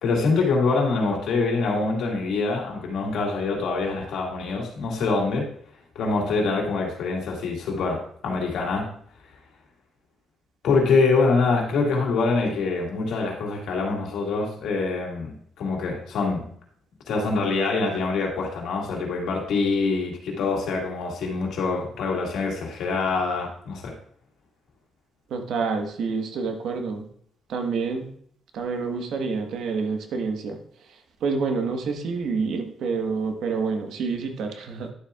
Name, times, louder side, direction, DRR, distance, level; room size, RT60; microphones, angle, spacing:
voice 1, 0.0-5.5 6.0-8.9 10.6-16.5 17.1-23.9, left 4 dB, 75° left, -1 dB, 2.2 m, -25 dB
voice 2, 25.3-27.1 27.5-28.1 28.5-30.6 30.9-34.9, right 4 dB, 75° right, 4 dB, 1.3 m, -28 dB
11.0 x 7.3 x 2.4 m, 0.63 s
cardioid pair, 90°, 0 cm